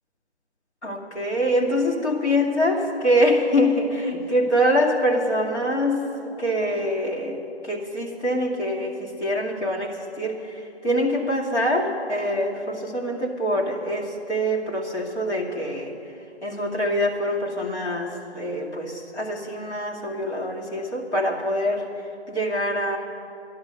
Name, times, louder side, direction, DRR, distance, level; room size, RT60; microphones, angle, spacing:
voice 1, 0.8-6.0 6.4-16.0 16.4-21.9 22.3-23.0, equal, 85° left, -2 dB, 2.5 m, -24 dB
13.0 x 11.0 x 6.7 m, 2.7 s
figure-of-eight pair, 135°, 33 cm